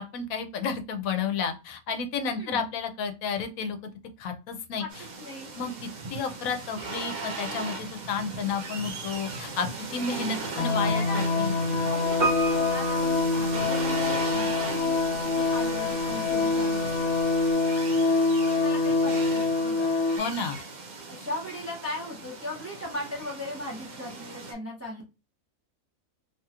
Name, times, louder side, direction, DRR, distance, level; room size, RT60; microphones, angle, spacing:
voice 1, 0.0-3.8 4.2-4.8 5.6-5.7 6.1-11.5 20.2-20.6, left 5 dB, 80° left, 7 dB, 1.0 m, -31 dB
voice 2, 2.3-2.7 4.8-4.9 5.2-5.6 10.1-11.5 11.8-16.9 18.5-19.9 21.1-25.0, left 1 dB, 15° right, -3 dB, 0.5 m, -38 dB
sound 1, 4.9-24.5, right 3 dB, 85° right, 1.3 m, -38 dB
sound 2, 10.6-20.2, left 3 dB, 55° left, 1.1 m, -25 dB
Piano, 12.2-14.2 14.5-14.6, right 3 dB, 55° right, 1.4 m, -31 dB
3.0 x 2.8 x 2.3 m, 0.29 s
omnidirectional pair, 1.4 m